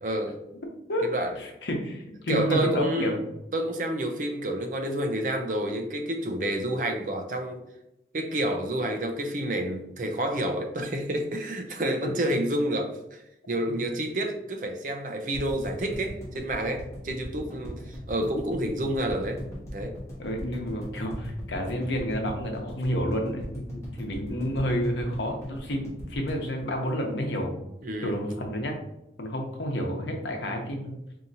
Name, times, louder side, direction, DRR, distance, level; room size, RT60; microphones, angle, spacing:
voice 1, 0.0-0.4 1.0-1.3 2.3-3.2 3.5-7.6 8.1-13.2 13.5-19.4 19.7-20.0 27.8-28.2, right 1 dB, 45° right, 4 dB, 0.5 m, -29 dB
voice 2, 1.4-3.2 12.0-12.1 13.7-13.8 20.2-27.6 28.0-28.8 29.2-30.9, equal, 85° left, 2 dB, 0.8 m, -30 dB
sound 1, 15.3-27.5 27.8-27.9 28.1-28.2, equal, 15° left, 1.2 m, -38 dB
4.9 x 2.8 x 2.7 m, 0.86 s
head